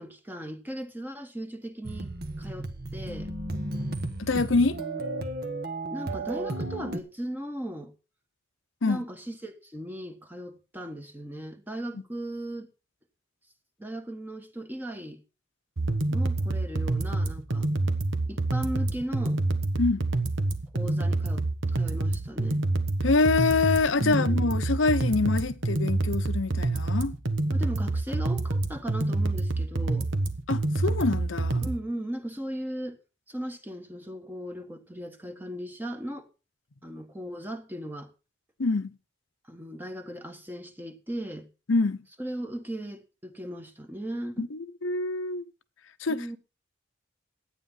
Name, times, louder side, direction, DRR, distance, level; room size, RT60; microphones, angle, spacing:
voice 1, 0.0-2.1 2.4-3.3 5.9-7.9 8.8-12.7 13.8-15.2 16.1-17.7 18.2-19.4 20.7-22.6 24.0-24.6 27.5-30.1 31.6-33.0 33.3-36.3 36.8-38.1 39.5-41.5 42.2-44.5 46.1-46.4, equal, 10° right, 1.3 m, -37 dB
sound 1, 1.8-7.0, right 2 dB, 50° right, 1.3 m, -34 dB
voice 2, 4.2-4.8 8.8-9.0 19.8-20.1 23.0-27.1 30.5-31.7 38.6-39.0 41.7-42.0 44.4-45.4 46.0-46.4, left 3 dB, 80° left, 0.8 m, -25 dB
sound 2, 15.8-31.8, right 2 dB, 80° right, 1.4 m, -27 dB
12.0 x 9.1 x 5.6 m
head